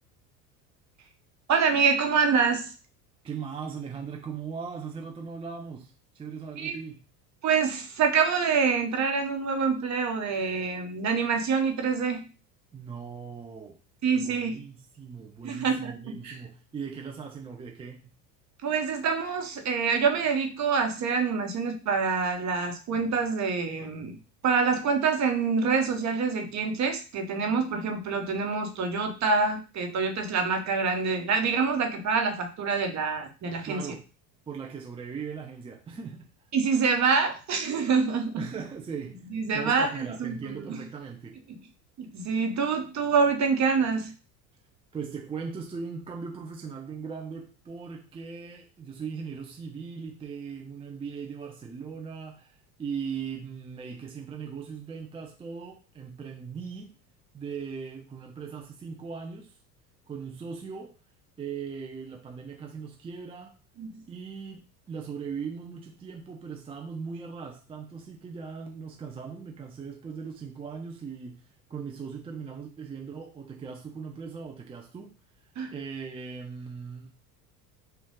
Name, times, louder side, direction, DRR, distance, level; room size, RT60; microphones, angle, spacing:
voice 1, 1.5-2.7 6.6-6.8 7.4-12.2 14.0-14.6 15.4-16.4 18.6-24.2 24.4-33.9 36.5-38.4 39.3-40.8 41.5-41.6 42.0-44.1 63.8-64.0 75.6-75.7, right 5 dB, 35° right, 1.1 m, -26 dB
voice 2, 3.2-7.0 12.7-13.8 14.2-18.0 33.6-34.0 34.5-36.3 38.4-39.2 39.5-41.4 44.9-57.0 57.3-59.6 60.1-60.9 61.4-63.5 64.1-75.1 75.4-77.1, right 6 dB, 10° right, 0.5 m, -39 dB
5.0 x 2.5 x 3.7 m
figure-of-eight pair, 70°, 49 cm